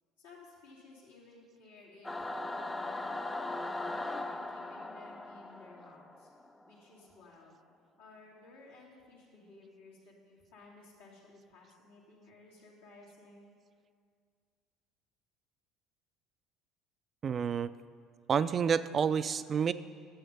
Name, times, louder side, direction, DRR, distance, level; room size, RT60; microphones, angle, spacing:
voice 1, 0.2-3.2 3.9-6.3 6.7-7.5 8.0-13.5, left 3 dB, 85° left, -6 dB, 2.6 m, -55 dB
Singing / Musical instrument, 2.0-6.7, left 2 dB, 15° left, 0.6 m, -39 dB
voice 2, 17.2-17.7 18.3-19.7, right 7 dB, 40° right, 14 dB, 0.3 m, -29 dB
11.0 x 7.8 x 5.5 m, 2.1 s
hypercardioid pair, 70°, 0 cm